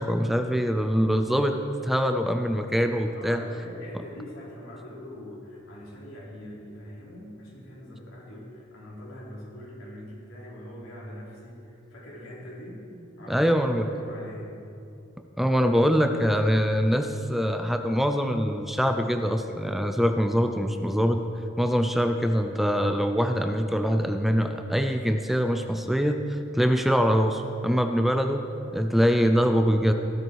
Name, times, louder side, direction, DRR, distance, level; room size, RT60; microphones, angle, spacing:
voice 1, 0.0-1.6 1.8-3.4 13.3-13.9 15.4-21.2 21.6-28.4 28.7-29.9, equal, ahead, 6 dB, 0.5 m, -24 dB
voice 2, 3.2-12.8 13.2-14.6, left 1 dB, 85° left, -5 dB, 4.0 m, -42 dB
15.5 x 12.0 x 4.7 m, 2.7 s
head